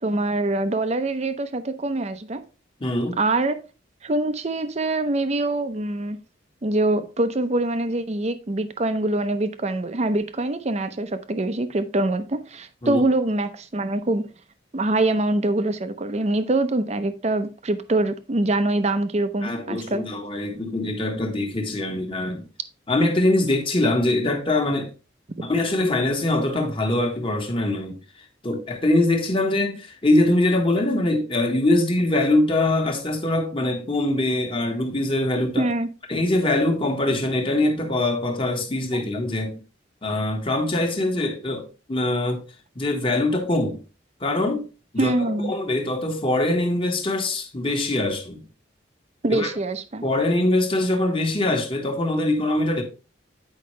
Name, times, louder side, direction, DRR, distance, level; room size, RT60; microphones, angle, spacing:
voice 1, 0.0-2.4 3.2-3.6 4.0-6.2 6.6-14.2 14.7-20.0 35.6-35.9 45.0-45.5 49.2-50.0, right 2 dB, 35° right, 0.6 m, -24 dB
voice 2, 2.8-3.2 12.8-13.0 19.4-22.5 22.9-24.9 25.4-27.9 28.4-35.7 36.1-39.6 40.0-42.4 42.7-43.8 44.2-44.7 44.9-45.1 45.4-48.4 49.3-49.5 50.0-52.8, left 2 dB, 30° left, 1.4 m, -23 dB
8.6 x 5.2 x 3.2 m
head